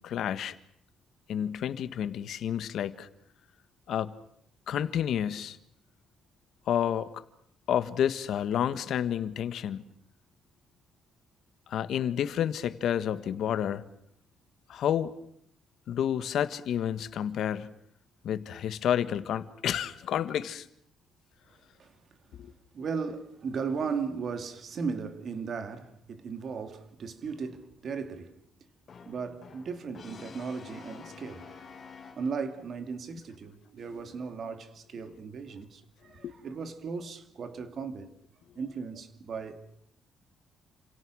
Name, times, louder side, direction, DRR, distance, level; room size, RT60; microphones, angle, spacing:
voice 1, 0.0-0.5 1.3-3.1 3.9-4.1 4.7-5.6 6.7-7.2 7.7-9.8 11.7-13.8 14.7-15.1 15.9-17.7 18.2-20.6 22.4-22.5 36.2-36.3, left 9 dB, 65° left, 1.5 m, -30 dB
voice 2, 21.8-22.2 22.4-28.4 29.0-31.8 32.1-38.1 38.6-39.6, right 5 dB, 45° right, 2.5 m, -37 dB
Brass instrument, 28.9-32.7, left 5 dB, 35° left, 3.5 m, -48 dB
29.0 x 27.0 x 6.4 m
cardioid pair, 155°, 0 cm